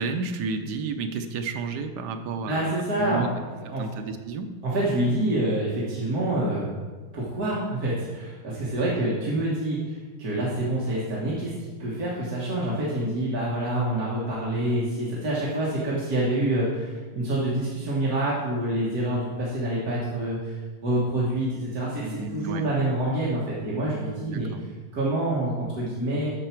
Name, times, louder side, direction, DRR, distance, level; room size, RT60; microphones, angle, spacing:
voice 1, 0.0-3.3 3.6-4.6 22.0-22.7 24.3-24.6, right 4 dB, 70° right, 6 dB, 1.0 m, -31 dB
voice 2, 2.5-3.3 3.7-3.8 4.6-6.7 7.1-20.6 20.8-24.5 24.9-26.3, right 1 dB, 50° right, -6 dB, 1.8 m, -27 dB
13.0 x 4.8 x 4.5 m, 1.3 s
omnidirectional pair, 2.4 m